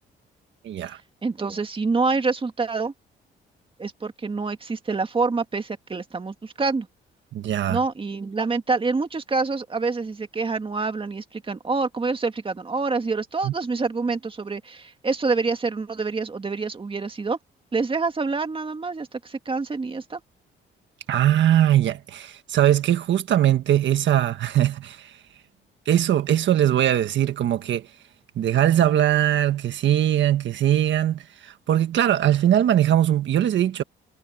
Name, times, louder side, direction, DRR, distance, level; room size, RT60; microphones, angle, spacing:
voice 1, 0.6-1.0 7.3-7.8 13.4-13.5 21.1-25.2 25.8-27.9 28.3-33.8, right 11 dB, 70° right, 1.5 m, -21 dB
voice 2, 1.2-2.9 3.8-6.9 7.7-17.4 17.7-20.2, right 4 dB, 25° right, 2.1 m, -26 dB
cardioid pair, 90°, 20 cm